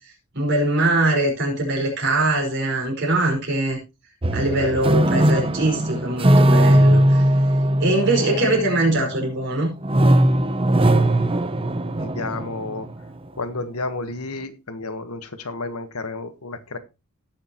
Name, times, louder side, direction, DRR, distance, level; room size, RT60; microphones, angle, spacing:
voice 1, 0.3-3.8 4.3-7.3 7.8-9.7, right 2 dB, 50° right, -1 dB, 5.3 m, -22 dB
sound 1, 4.2-9.4 9.8-12.9, right 1 dB, 25° right, 0.7 m, -19 dB
voice 2, 4.6-4.9 12.0-12.9 13.4-16.8, left 3 dB, 85° left, 10 dB, 1.4 m, -31 dB
17.5 x 6.6 x 3.0 m, 0.26 s
head